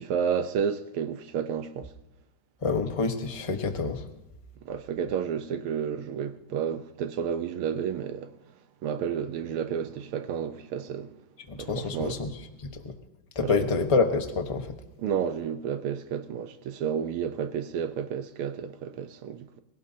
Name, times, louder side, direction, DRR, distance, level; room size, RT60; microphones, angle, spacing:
voice 1, 0.0-1.9 4.6-8.3 8.8-11.1 11.6-12.2 13.4-13.5 15.0-19.5, right 7 dB, 80° right, 1.8 m, -31 dB
voice 2, 2.6-4.0 11.5-12.3 12.8-12.9 13.3-14.7, left 4 dB, 20° left, 0.9 m, -27 dB
22.5 x 17.0 x 2.8 m
omnidirectional pair, 2.4 m